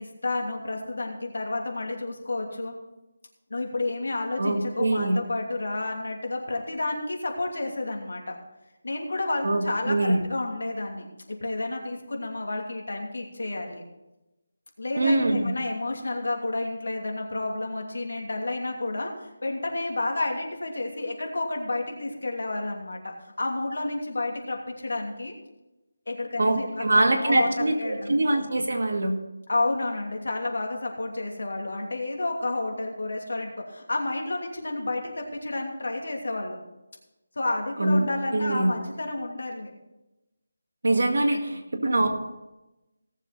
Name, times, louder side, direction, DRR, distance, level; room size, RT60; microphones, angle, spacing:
voice 1, 0.0-2.7 3.5-8.4 8.8-13.8 14.8-25.3 26.1-28.3 29.5-36.6 37.4-39.7 41.2-41.6, left 2 dB, 70° left, 1 dB, 2.8 m, -30 dB
voice 2, 4.4-5.2 9.4-10.2 15.0-15.5 26.4-29.2 37.8-38.0 38.3-38.7 40.8-42.1, right 2 dB, 60° right, 3 dB, 2.1 m, -23 dB
18.0 x 7.2 x 4.2 m, 0.99 s
figure-of-eight pair, 175°, 0 cm